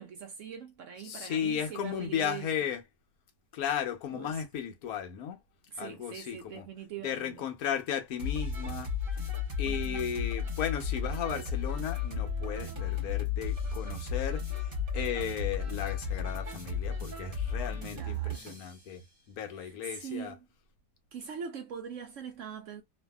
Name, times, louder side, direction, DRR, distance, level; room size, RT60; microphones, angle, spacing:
voice 1, 0.0-2.5 4.1-4.4 5.7-7.4 9.6-10.0 17.9-18.4 19.5-20.5 21.1-22.8, right 7 dB, 75° right, 0.7 m, -42 dB
voice 2, 1.0-2.8 3.5-5.4 5.8-6.6 7.0-8.9 9.6-14.4 14.9-19.0 19.4-20.3, left 9 dB, 65° left, 1.1 m, -35 dB
sound 1, 8.2-18.8, left 5 dB, 40° right, 1.0 m, -34 dB
2.7 x 2.5 x 2.2 m
omnidirectional pair, 1.8 m